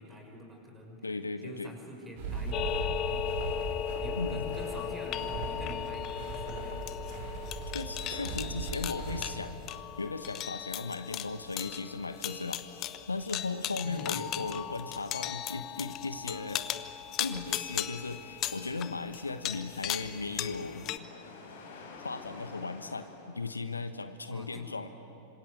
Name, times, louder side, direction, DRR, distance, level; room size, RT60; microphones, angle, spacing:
voice 1, 0.0-1.1 1.4-3.8 4.0-7.1 13.8-14.3 24.3-24.7, left 1 dB, 10° right, 2 dB, 6.3 m, -46 dB
voice 2, 1.0-1.7 4.2-4.5 7.7-9.5 10.0-16.7 17.2-20.9 22.0-24.9, left 3 dB, 80° left, 9 dB, 1.2 m, -37 dB
sound 1, 2.2-9.2, right 3 dB, 55° right, 7.5 m, -38 dB
sound 2, 2.5-21.0, left 11 dB, 35° left, 1.1 m, -37 dB
sound 3, 16.2-24.2, left 3 dB, 60° left, 4.9 m, -52 dB
27.0 x 26.0 x 8.3 m, 3.0 s
figure-of-eight pair, 90°, 0 cm